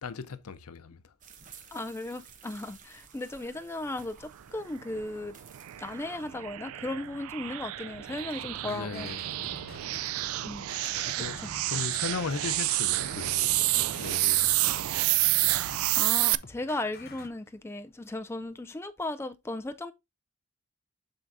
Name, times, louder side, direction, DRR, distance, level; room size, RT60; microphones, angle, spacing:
voice 1, 0.0-1.0 8.6-9.2 11.0-11.4 11.7-13.5 13.9-14.6, left 5 dB, 90° left, 0.7 m, -37 dB
sound 1, 1.2-6.4, right 6 dB, 35° right, 0.9 m, -54 dB
voice 2, 1.7-5.3 5.8-9.1 10.4-10.7 11.2-11.6 15.9-19.9, left 2 dB, 10° left, 0.3 m, -36 dB
sound 2, 4.8-16.4, right 17 dB, 75° right, 0.3 m, -29 dB
sound 3, 8.0-17.3, left 3 dB, 45° left, 0.7 m, -49 dB
7.8 x 6.0 x 2.6 m
head